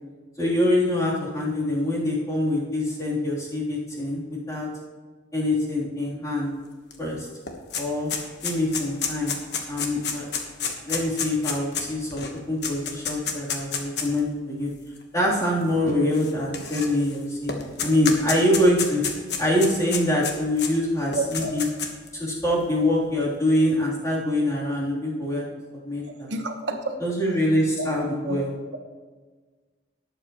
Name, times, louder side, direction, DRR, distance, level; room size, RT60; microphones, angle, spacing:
voice 1, 0.4-4.7 5.3-6.5 7.0-7.3 7.7-8.1 8.4-9.3 9.7-10.2 10.6-14.7 15.1-19.0 19.4-21.7 22.2-25.4 25.8-26.3 27.0-28.5, left 1 dB, 20° left, -7 dB, 3.5 m, -24 dB
sound 1, 6.9-7.0 7.2-14.2 15.0-15.1 16.1-17.2 17.5-20.7 21.1-22.1, left 6 dB, 60° left, 1.4 m, -29 dB
voice 2, 21.1-21.5 26.1-27.0 27.8-27.9 28.2-28.4, right 2 dB, 75° right, 5 dB, 1.3 m, -30 dB
19.0 x 8.1 x 3.1 m, 1.4 s
head